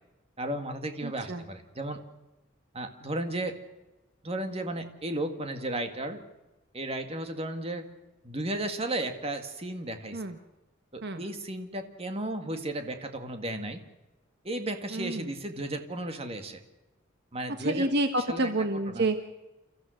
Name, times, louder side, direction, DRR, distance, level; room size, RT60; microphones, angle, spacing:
voice 1, 0.4-2.0 2.7-3.6 4.2-6.2 6.7-7.9 8.2-10.2 10.9-13.8 14.4-16.6 17.3-17.9 18.3-18.5 18.9-19.1, right 1 dB, 30° right, 6 dB, 2.0 m, -34 dB
voice 2, 1.0-1.4 10.1-10.4 11.0-11.2 14.9-15.3 17.6-19.2, right 2 dB, 55° right, 8 dB, 1.3 m, -29 dB
29.0 x 14.5 x 6.4 m, 1.0 s
head